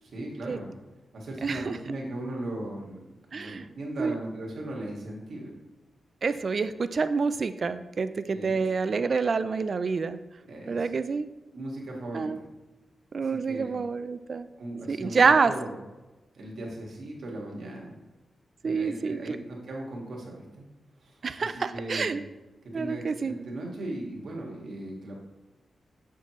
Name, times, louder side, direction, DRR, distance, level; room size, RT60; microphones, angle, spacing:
voice 1, 0.0-0.7 1.1-5.5 8.3-8.6 10.5-10.9 11.5-12.5 13.2-13.7 14.6-15.8 16.3-17.9 18.6-20.7 21.0-21.2 21.5-22.2 22.6-25.2, right 1 dB, 65° right, -2 dB, 1.7 m, -38 dB
voice 2, 1.4-1.8 3.3-3.6 4.0-4.1 6.2-10.2 10.7-11.3 12.1-12.4 13.1-14.5 14.9-15.5 18.6-19.4 21.2-22.2 22.7-23.3, right 5 dB, 45° right, 12 dB, 0.3 m, -27 dB
6.8 x 6.4 x 3.0 m, 1.1 s
wide cardioid pair, 155°, 0 cm